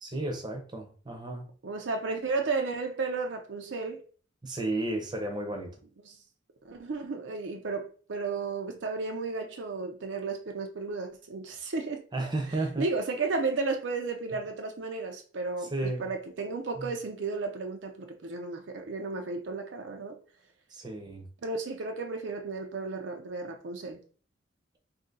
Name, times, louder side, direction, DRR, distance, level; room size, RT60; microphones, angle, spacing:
voice 1, 0.0-1.5 4.4-5.7 12.1-12.9 15.7-16.1 16.8-16.9 20.7-21.3, right 2 dB, 25° right, 0.7 m, -33 dB
voice 2, 1.6-4.0 6.0-6.2 6.6-12.0 12.5-20.2 21.4-24.0, right 3 dB, 75° right, 0.6 m, -33 dB
2.7 x 2.6 x 3.8 m
head